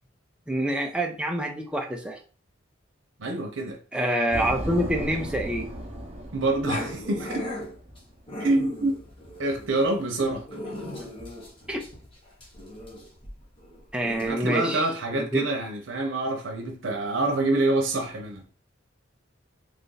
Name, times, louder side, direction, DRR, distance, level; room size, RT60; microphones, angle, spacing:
voice 1, 0.5-2.2 3.9-5.7 11.7-11.8 13.9-14.8 15.2-15.4, right 1 dB, 5° right, 0.5 m, -26 dB
voice 2, 3.2-3.8 6.3-7.4 8.4-9.0 9.4-10.5 14.3-18.4, right 2 dB, 90° right, 0.8 m, -26 dB
sound 1, 4.3-8.0, right 1 dB, 35° right, 0.8 m, -35 dB
Growling, 6.6-14.3, left 1 dB, 30° left, 1.1 m, -38 dB
3.2 x 2.6 x 3.9 m
head